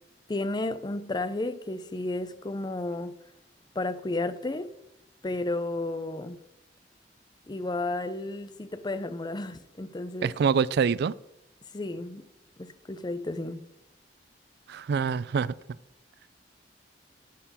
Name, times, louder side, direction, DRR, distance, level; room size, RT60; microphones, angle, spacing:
voice 1, 0.3-3.2 3.8-4.7 5.2-6.4 7.5-10.4 11.7-12.2 12.6-13.6, left 2 dB, 25° left, 0.5 m, -32 dB
voice 2, 10.2-11.1 14.7-15.5, right 6 dB, 65° right, 0.3 m, -25 dB
11.5 x 4.4 x 6.9 m
head